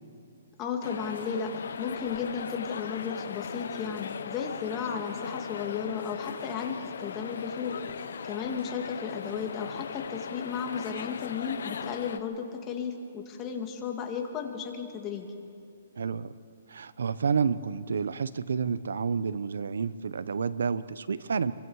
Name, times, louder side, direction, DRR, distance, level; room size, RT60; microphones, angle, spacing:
voice 1, 0.6-1.5 1.8-7.7 8.2-15.3, left 6 dB, 20° left, 3 dB, 2.0 m, -34 dB
sound 1, 0.8-12.2, left 7 dB, 70° left, 1.0 m, -38 dB
voice 2, 16.0-16.3 16.7-21.5, right 6 dB, 85° right, 16 dB, 0.8 m, -29 dB
26.5 x 24.0 x 4.8 m, 2.6 s
hypercardioid pair, 160°, 0 cm